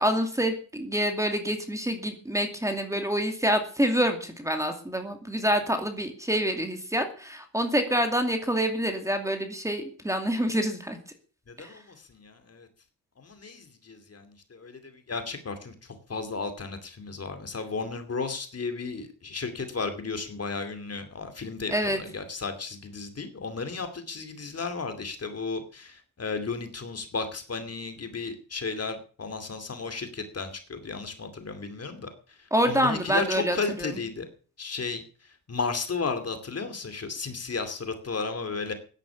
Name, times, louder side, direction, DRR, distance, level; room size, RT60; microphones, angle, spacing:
voice 1, 0.0-11.0 11.6-11.7 21.7-22.0 32.5-33.9, equal, 10° right, 5 dB, 2.4 m, -27 dB
voice 2, 11.5-12.7 13.2-15.7 16.1-32.1 32.6-34.2 34.6-35.0 35.5-38.7, left 4 dB, 40° left, 8 dB, 2.6 m, -34 dB
15.0 x 10.5 x 7.0 m, 0.41 s
wide cardioid pair, 155°, 37 cm